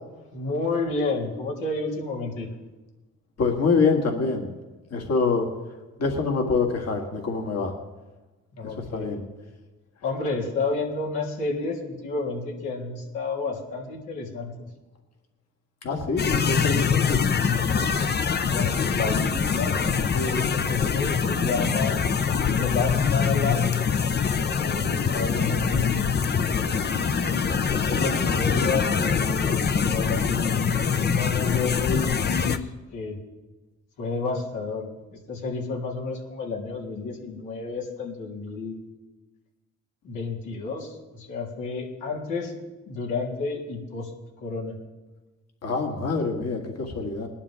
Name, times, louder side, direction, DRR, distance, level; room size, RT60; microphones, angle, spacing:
voice 1, 0.3-2.5 8.5-9.2 10.0-14.7 18.5-19.7 20.1-22.0 22.5-23.6 24.6-26.1 27.2-33.2 34.0-34.9 35.3-38.8 40.0-42.5 42.9-44.1 44.4-44.7, left 3 dB, 90° left, -4 dB, 3.7 m, -30 dB
voice 2, 3.4-4.5 4.9-5.5 6.0-7.7 8.9-9.2 15.8-17.2 45.6-47.3, left 4 dB, 55° left, 2 dB, 2.2 m, -25 dB
sound 1, 16.2-32.6, left 6 dB, 35° left, 0.8 m, -24 dB
20.0 x 11.5 x 3.6 m, 1.1 s
cardioid pair, 90°, 30 cm